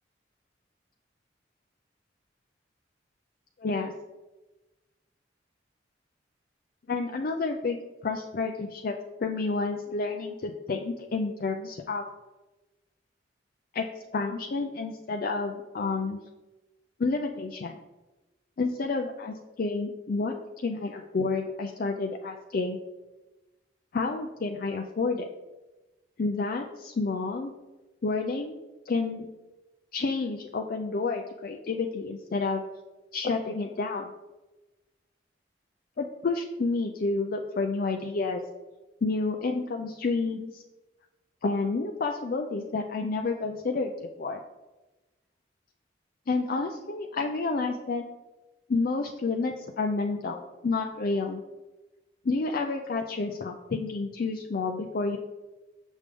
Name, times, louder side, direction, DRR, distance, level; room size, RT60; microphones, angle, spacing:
voice 1, 3.6-3.9 6.9-7.8 8.0-9.0 9.2-12.0 13.7-13.9 14.1-16.2 17.0-17.8 18.6-20.3 20.6-22.8 23.9-25.3 26.2-27.5 28.0-28.6 28.9-29.3 29.9-32.6 33.1-34.1 36.0-38.4 39.0-40.6 41.4-43.9 44.2-44.4 46.3-48.0 48.7-51.4 52.2-55.2, left 3 dB, 50° left, 3 dB, 0.4 m, -29 dB
6.7 x 6.2 x 3.5 m, 1.1 s
head